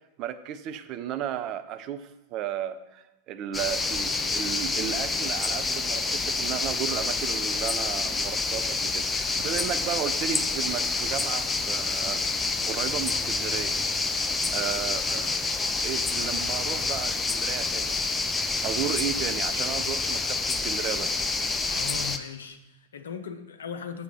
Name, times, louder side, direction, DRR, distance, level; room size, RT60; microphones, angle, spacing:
voice 1, 0.2-12.2 12.7-13.8 14.2-15.3 15.8-18.0 18.6-21.3, right 10 dB, 40° right, 10 dB, 0.5 m, -34 dB
sound 1, 3.5-22.2, left 3 dB, 15° left, 0.5 m, -28 dB
voice 2, 21.7-24.0, left 7 dB, 65° left, 7 dB, 0.7 m, -38 dB
7.1 x 6.7 x 4.2 m, 0.99 s
figure-of-eight pair, 90°, 0 cm